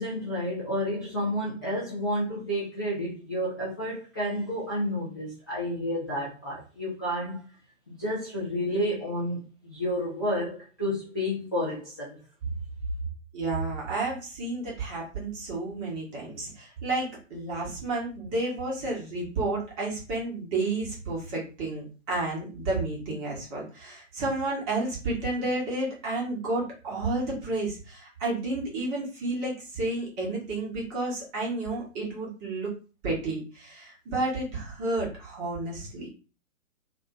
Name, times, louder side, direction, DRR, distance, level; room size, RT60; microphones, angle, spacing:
voice 1, 0.0-7.5 7.9-12.2, equal, 20° left, 0.3 m, -30 dB
voice 2, 13.3-32.7 33.0-36.1, right 2 dB, 15° right, 0.7 m, -31 dB
2.4 x 2.2 x 2.3 m
figure-of-eight pair, 120°, 39 cm